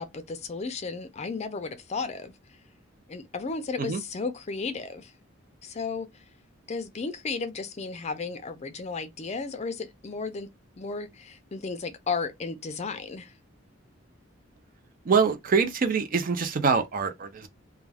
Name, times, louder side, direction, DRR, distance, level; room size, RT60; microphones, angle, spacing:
voice 1, 0.0-2.3 3.1-5.1 5.6-6.2 6.7-10.5 10.8-13.3, left 4 dB, 35° left, 0.4 m, -34 dB
voice 2, 15.0-17.5, right 5 dB, 45° right, 0.4 m, -24 dB
2.3 x 2.2 x 3.3 m
head